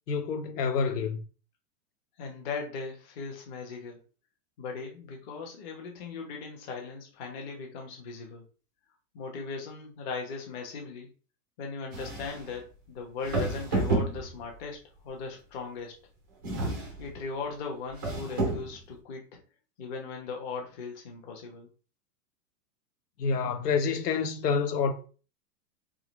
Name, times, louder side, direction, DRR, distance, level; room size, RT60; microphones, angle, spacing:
voice 1, 0.1-1.2 23.2-24.9, left 5 dB, 75° left, 0.9 m, -28 dB
voice 2, 2.2-4.0 4.6-8.4 9.1-11.1 11.6-15.9 17.0-19.3 19.8-21.7, left 4 dB, 30° left, 1.0 m, -38 dB
sound 1, 11.9-12.6 13.2-14.6 16.4-17.2 17.9-18.8, right 2 dB, 15° right, 0.4 m, -30 dB
3.8 x 3.4 x 3.1 m
hypercardioid pair, 160°, 48 cm